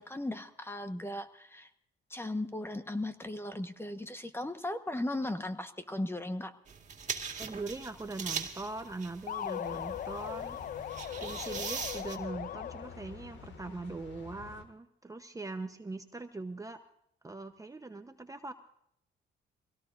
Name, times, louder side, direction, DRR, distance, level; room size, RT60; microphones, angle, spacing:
voice 1, 0.0-1.7 2.1-6.5, left 1 dB, 10° left, 8 dB, 1.2 m, -37 dB
sound 1, 6.7-12.2, right 6 dB, 40° right, 2.2 m, -41 dB
voice 2, 7.4-10.9 11.2-16.8 17.2-18.5, right 3 dB, 15° right, 7 dB, 0.9 m, -41 dB
sound 2, 9.3-13.1, left 10 dB, 45° left, 0.4 m, -39 dB
sound 3, 9.6-14.6, left 5 dB, 70° left, 2.1 m, -50 dB
23.0 x 17.5 x 2.6 m, 0.72 s
cardioid pair, 90°, 20 cm